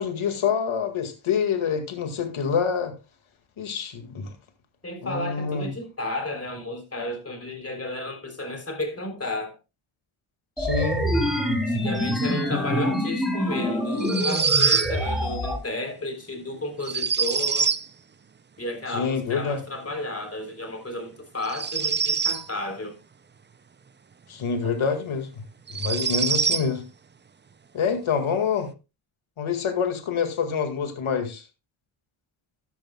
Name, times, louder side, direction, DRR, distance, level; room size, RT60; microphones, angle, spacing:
voice 1, 0.0-2.9 3.6-4.3 5.0-5.7 10.6-11.1 18.9-19.6 24.3-25.3 25.7-26.8 27.7-28.7 29.4-31.4, left 6 dB, 75° left, 2.0 m, -26 dB
voice 2, 4.8-9.5 11.7-17.7 18.6-23.0, left 2 dB, 30° left, 3.5 m, -33 dB
sound 1, 10.6-15.6, equal, ahead, 3.0 m, -25 dB
sound 2, 14.0-14.9 16.8-17.9 21.4-22.5 24.6-24.7 25.7-26.7, right 6 dB, 25° right, 0.4 m, -24 dB
13.0 x 10.5 x 2.3 m
wide cardioid pair, 110°, 49 cm